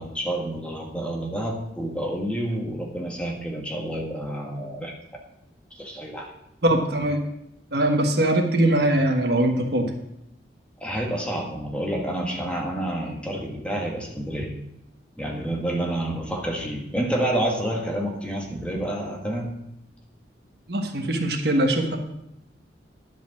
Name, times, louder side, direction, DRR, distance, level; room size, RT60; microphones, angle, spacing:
voice 1, 0.0-4.9 5.7-6.3 10.8-14.5 15.2-19.5, right 1 dB, 5° left, 0 dB, 1.6 m, -29 dB
voice 2, 6.6-7.2 7.7-9.9 20.7-22.0, right 1 dB, 65° right, 3 dB, 1.4 m, -21 dB
11.0 x 5.1 x 7.2 m, 0.82 s
head